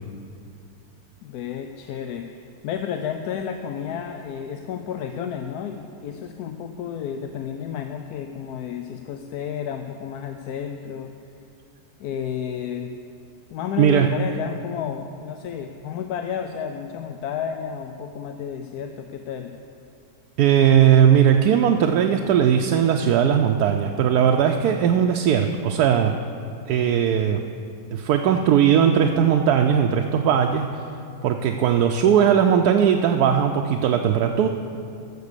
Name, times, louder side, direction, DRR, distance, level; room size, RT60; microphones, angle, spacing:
voice 1, 1.2-11.2 12.0-12.9 13.5-19.5, left 8 dB, 80° left, 6 dB, 1.1 m, -31 dB
voice 2, 13.8-14.1 20.4-26.1 26.7-27.4 27.9-30.7 31.2-34.5, right 8 dB, 90° right, 4 dB, 1.1 m, -18 dB
13.5 x 6.7 x 6.7 m, 2.5 s
omnidirectional pair, 1.6 m